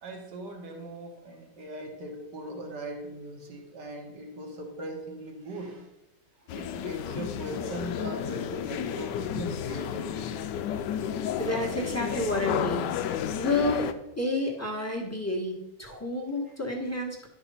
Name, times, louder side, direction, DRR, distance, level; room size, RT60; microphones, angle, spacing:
voice 1, 0.0-5.9 6.5-10.4, right 1 dB, 65° right, 1 dB, 2.2 m, -39 dB
sound 1, 6.5-13.9, left 9 dB, 75° left, 1.2 m, -32 dB
voice 2, 11.3-12.8 13.4-13.9 14.2-17.3, left 2 dB, 10° left, 0 dB, 1.3 m, -29 dB
11.5 x 4.8 x 5.6 m, 0.88 s
omnidirectional pair, 2.0 m